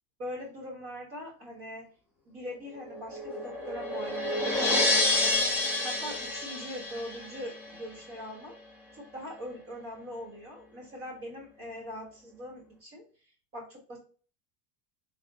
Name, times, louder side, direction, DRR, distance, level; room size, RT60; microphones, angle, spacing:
voice 1, 0.2-1.9 2.2-8.5 8.9-13.0 13.5-14.0, equal, 30° right, -2 dB, 1.4 m, -42 dB
sound 1, 2.6-7.8, left 2 dB, 5° right, 1.1 m, -29 dB
3.5 x 2.4 x 3.9 m, 0.39 s
cardioid pair, 175°, 45 cm